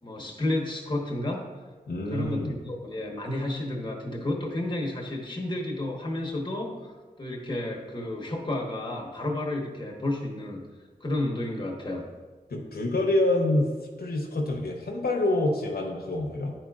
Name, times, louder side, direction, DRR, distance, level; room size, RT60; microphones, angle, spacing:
voice 1, 0.0-1.5 2.1-10.6 11.0-12.0, left 1 dB, 30° left, -1 dB, 1.2 m, -31 dB
voice 2, 1.9-2.5 12.5-13.7 14.0-16.5, left 1 dB, 75° left, 0 dB, 0.9 m, -26 dB
9.8 x 4.4 x 2.4 m, 1.3 s
cardioid pair, 60°, 16 cm